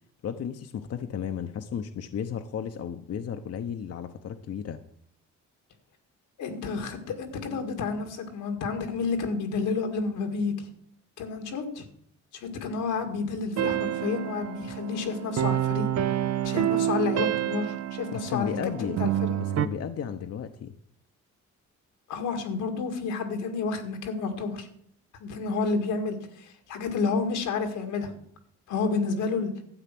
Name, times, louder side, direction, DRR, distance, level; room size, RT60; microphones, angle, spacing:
voice 1, 0.2-4.8 18.1-19.0 19.4-20.7, left 8 dB, 55° left, 7 dB, 0.8 m, -34 dB
voice 2, 6.4-10.7 11.2-11.9 12.4-15.9 16.4-19.4 22.1-24.7 25.2-28.1 28.7-29.5, left 4 dB, 90° left, 5 dB, 2.1 m, -30 dB
sound 1, 13.6-19.7, right 11 dB, 60° right, 0.7 m, -28 dB
12.0 x 8.0 x 6.0 m, 0.66 s
cardioid pair, 90°, 30 cm